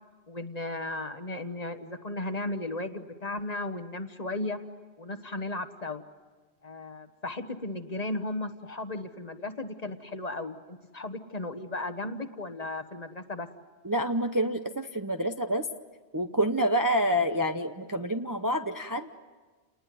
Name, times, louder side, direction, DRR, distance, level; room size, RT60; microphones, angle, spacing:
voice 1, 0.3-4.6 5.0-6.0 6.6-13.5, left 2 dB, 35° left, 9 dB, 1.3 m, -35 dB
voice 2, 13.8-15.7 16.1-19.1, equal, 20° right, 6 dB, 0.7 m, -27 dB
29.5 x 20.0 x 9.4 m, 1.4 s
omnidirectional pair, 1.2 m